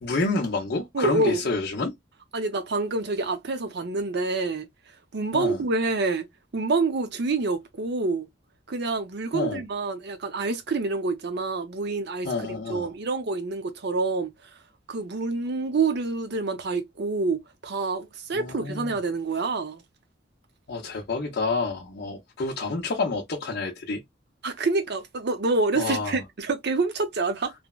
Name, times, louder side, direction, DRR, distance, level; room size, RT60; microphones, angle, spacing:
voice 1, 0.0-1.9 5.3-5.6 9.3-9.6 12.2-12.9 18.3-18.9 20.7-24.0 25.8-26.2, left 3 dB, 60° left, 0.6 m, -28 dB
voice 2, 0.9-1.4 2.3-4.7 5.1-6.3 6.5-8.3 8.7-14.3 14.9-19.8 24.4-27.5, right 3 dB, 60° right, 0.7 m, -27 dB
3.2 x 2.1 x 2.3 m
head